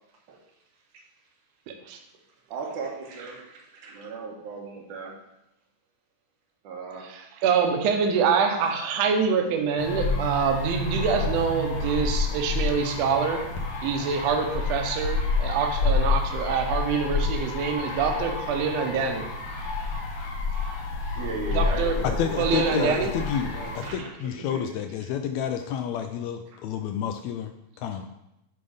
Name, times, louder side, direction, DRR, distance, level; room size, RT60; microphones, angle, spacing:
voice 1, 2.5-5.1 6.6-7.1 19.8-19.9 20.5-20.6 21.2-24.7, right 3 dB, 85° right, -1 dB, 2.7 m, -36 dB
voice 2, 7.0-13.5 13.8-19.3 21.5-22.0 22.4-23.1, right 6 dB, 70° right, 4 dB, 1.9 m, -25 dB
sound 1, 9.8-23.9, left 3 dB, 60° left, 1.8 m, -29 dB
voice 3, 22.0-27.5 27.8-28.1, left 8 dB, 80° left, 7 dB, 1.7 m, -30 dB
9.6 x 3.8 x 5.0 m, 0.87 s
omnidirectional pair, 3.4 m